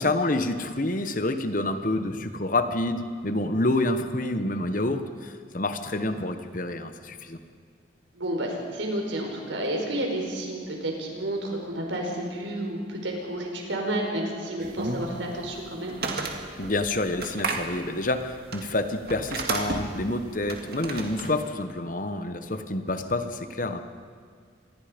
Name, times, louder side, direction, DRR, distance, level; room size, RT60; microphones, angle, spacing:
voice 1, 0.0-7.4 16.6-23.8, left 2 dB, 45° left, 9 dB, 1.2 m, -28 dB
voice 2, 8.1-16.0, right 1 dB, 80° right, 1 dB, 4.9 m, -31 dB
sound 1, 14.6-21.5, right 3 dB, 55° right, 2.2 m, -34 dB
26.5 x 20.5 x 5.3 m, 2.1 s
head